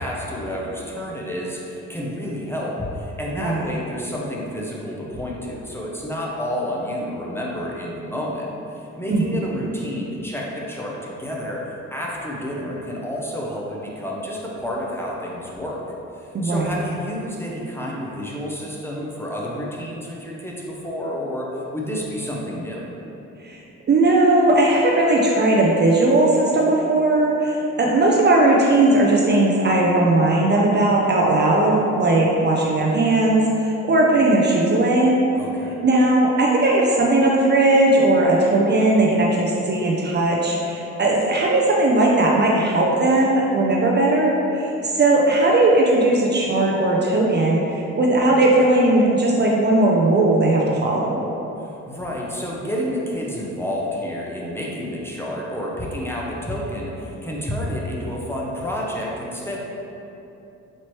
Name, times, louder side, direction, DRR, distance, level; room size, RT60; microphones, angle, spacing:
voice 1, 0.0-11.6 11.9-15.8 16.1-22.9 35.3-35.8 51.6-59.6, equal, 10° left, -4 dB, 0.6 m, -30 dB
voice 2, 9.1-9.4 16.3-16.7 23.4-23.6 23.9-35.2 35.8-51.2, right 2 dB, 35° right, -2 dB, 0.4 m, -18 dB
4.3 x 3.0 x 3.0 m, 2.9 s
cardioid pair, 90°, 30 cm